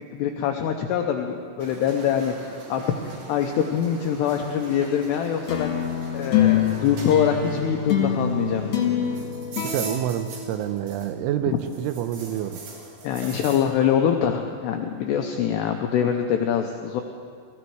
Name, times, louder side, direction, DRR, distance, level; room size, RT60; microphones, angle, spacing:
voice 1, 0.1-2.8 3.3-5.8 6.1-8.8 13.0-17.0, left 8 dB, 90° left, 3 dB, 2.4 m, -24 dB
sound 1, 1.6-11.3 11.6-13.6, right 3 dB, 60° right, 4.9 m, -41 dB
sound 2, 5.5-11.1, left 9 dB, 55° left, 1.9 m, -25 dB
voice 2, 9.6-12.6, right 11 dB, 85° right, 9 dB, 2.9 m, -28 dB
20.0 x 15.5 x 4.7 m, 2.3 s
omnidirectional pair, 5.8 m